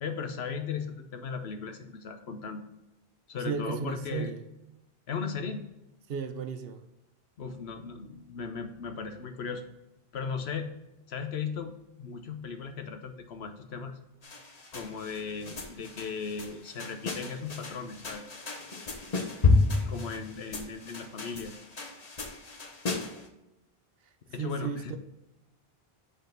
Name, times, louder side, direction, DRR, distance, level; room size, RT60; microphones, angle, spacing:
voice 1, 0.0-2.6 3.3-4.3 5.1-5.6 7.4-9.6 10.1-10.7 11.1-14.0 14.7-18.2 19.8-21.5 24.3-24.9, left 5 dB, 85° left, 6 dB, 1.1 m, -37 dB
voice 2, 3.4-4.4 6.1-6.8 24.4-25.0, right 6 dB, 70° right, 9 dB, 0.9 m, -34 dB
sound 1, 14.2-23.3, left 3 dB, 40° left, 1.0 m, -31 dB
8.1 x 4.1 x 5.2 m, 0.93 s
omnidirectional pair, 1.0 m